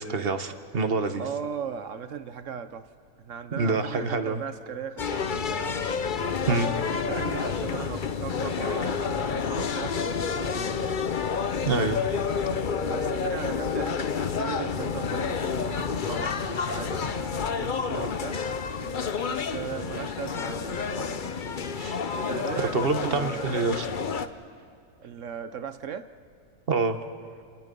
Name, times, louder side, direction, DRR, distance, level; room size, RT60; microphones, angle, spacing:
voice 1, 0.0-1.2 3.5-4.4 6.5-6.7 11.6-12.2 21.8-22.0 22.7-23.9 26.7-27.1, right 3 dB, 35° right, 8 dB, 1.1 m, -26 dB
voice 2, 1.2-2.9 3.2-5.6 6.4-11.1 12.8-17.3 17.6-18.4 19.2-21.2 22.1-23.6 25.0-26.1, right 7 dB, 60° right, 11 dB, 0.8 m, -38 dB
sound 1, 5.0-24.3, left 6 dB, 90° left, 0.4 m, -29 dB
28.0 x 28.0 x 5.4 m, 2.2 s
omnidirectional pair, 2.1 m